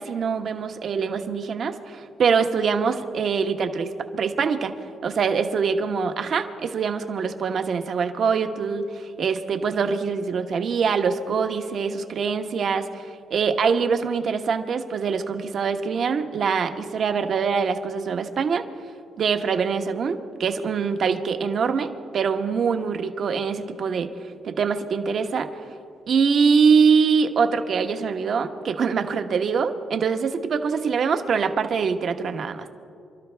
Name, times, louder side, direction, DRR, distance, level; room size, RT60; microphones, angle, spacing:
voice 1, 0.0-4.7 5.0-18.6 19.2-24.1 24.4-25.5 26.1-32.7, right 5 dB, 55° right, 7 dB, 1.2 m, -24 dB
28.0 x 12.5 x 3.4 m, 2.4 s
cardioid pair, 90°, 0 cm